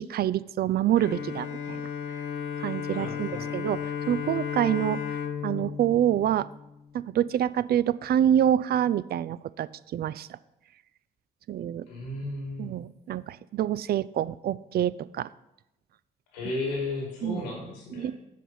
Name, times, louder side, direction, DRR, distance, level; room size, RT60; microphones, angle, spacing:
voice 1, 0.0-1.8 2.6-5.0 5.4-6.5 6.9-10.4 11.5-11.8 12.6-15.3 17.2-17.4 17.9-18.1, right 11 dB, 50° right, 17 dB, 0.4 m, -26 dB
Bowed string instrument, 1.0-7.1, left 7 dB, 70° left, 0.9 m, -34 dB
voice 2, 2.9-3.5 11.9-12.7 16.3-18.1, left 2 dB, 90° left, -1 dB, 2.0 m, -34 dB
7.4 x 5.4 x 5.6 m, 0.89 s
hypercardioid pair, 45°, 21 cm